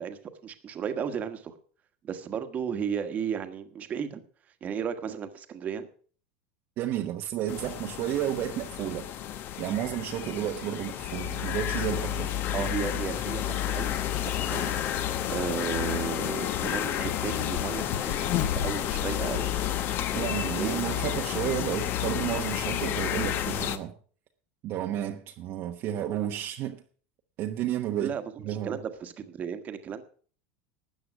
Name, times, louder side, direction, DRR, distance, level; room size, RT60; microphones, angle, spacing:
voice 1, 0.0-1.5 2.0-4.2 4.6-5.9 12.5-14.7 15.3-19.5 20.2-20.8 27.9-30.0, right 7 dB, 30° right, 1.4 m, -34 dB
voice 2, 6.8-9.1 9.6-12.3 20.1-23.9 24.6-26.8 27.4-28.1 28.4-28.8, right 11 dB, 45° right, 1.1 m, -31 dB
sound 1, 7.5-23.8, left 11 dB, 40° left, 1.1 m, -31 dB
Bird, 17.5-20.7 21.2-21.3 21.6-21.9 22.6-22.7, left 9 dB, 60° left, 1.4 m, -36 dB
13.0 x 8.8 x 6.1 m
supercardioid pair, 150°, 6 cm